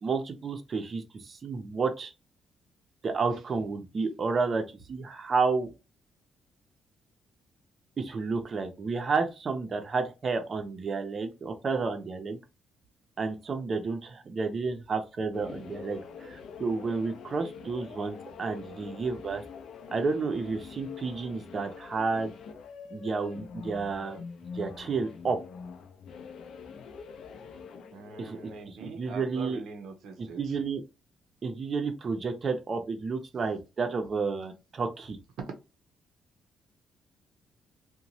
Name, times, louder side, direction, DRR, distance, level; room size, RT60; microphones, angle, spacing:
voice 1, 0.0-2.1 3.0-5.7 8.0-12.4 13.2-19.4 19.9-22.3 22.9-24.2 24.5-25.4 28.2-28.4 28.7-29.6 30.2-30.8 31.4-35.2, right 4 dB, 40° right, 0.5 m, -31 dB
sound 1, 15.3-28.6, left 5 dB, 70° left, 0.4 m, -45 dB
voice 2, 27.9-30.4 35.4-35.5, right 4 dB, 85° right, 0.6 m, -43 dB
2.9 x 2.1 x 2.6 m
cardioid pair, 130°, 0 cm